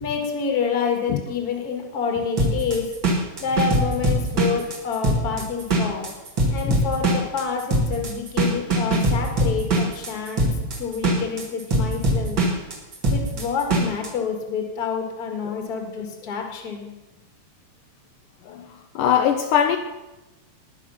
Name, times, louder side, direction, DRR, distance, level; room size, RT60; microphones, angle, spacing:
voice 1, 0.0-2.9 3.4-6.1 6.5-10.5 10.8-12.4 13.1-16.9, left 6 dB, 35° left, 3 dB, 2.0 m, -28 dB
sound 1, 2.4-14.1, right 1 dB, 35° right, 2.8 m, -22 dB
voice 2, 19.0-19.8, left 9 dB, 75° left, 6 dB, 2.1 m, -21 dB
20.0 x 6.9 x 5.7 m, 1.0 s
omnidirectional pair, 3.9 m